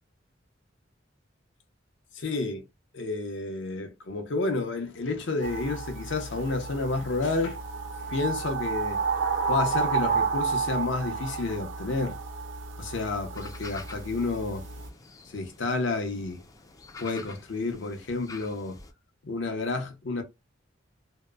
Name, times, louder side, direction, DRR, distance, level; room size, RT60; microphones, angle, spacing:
voice 1, 2.1-2.6 2.9-7.6 8.0-9.0 9.5-12.2 12.8-14.6 15.3-16.4 17.0-18.8 19.2-20.2, left 3 dB, 70° left, 0.7 m, -30 dB
sound 1, 5.4-14.9, right 5 dB, 70° right, 0.5 m, -31 dB
sound 2, 13.3-18.9, left 3 dB, 20° left, 0.3 m, -48 dB
2.8 x 2.1 x 2.2 m
head